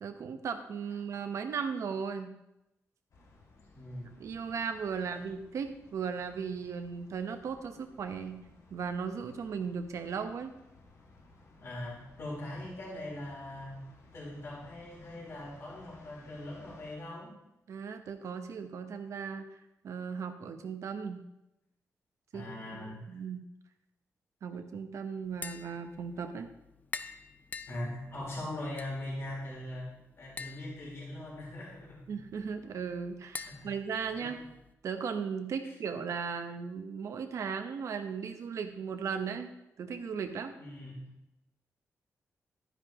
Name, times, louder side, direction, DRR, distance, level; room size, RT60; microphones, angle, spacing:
voice 1, 0.0-2.3 4.2-8.4 8.7-10.6 17.7-19.6 19.8-21.2 22.3-22.5 22.7-23.4 24.4-26.5 32.1-34.4 34.8-39.5 39.8-40.6, right 6 dB, 70° right, 7 dB, 0.9 m, -37 dB
sound 1, 3.1-17.0, left 2 dB, 70° left, 1.6 m, -59 dB
voice 2, 3.7-4.1 11.6-13.8 14.1-17.3 22.3-23.2 27.7-32.1 33.5-33.7 34.0-34.4 35.6-35.7 40.6-41.1, left 1 dB, 55° left, -5 dB, 3.9 m, -41 dB
Tap, 25.3-34.7, left 4 dB, 30° left, 0.4 m, -48 dB
12.0 x 10.0 x 3.0 m, 0.88 s
wide cardioid pair, 145°, 5 cm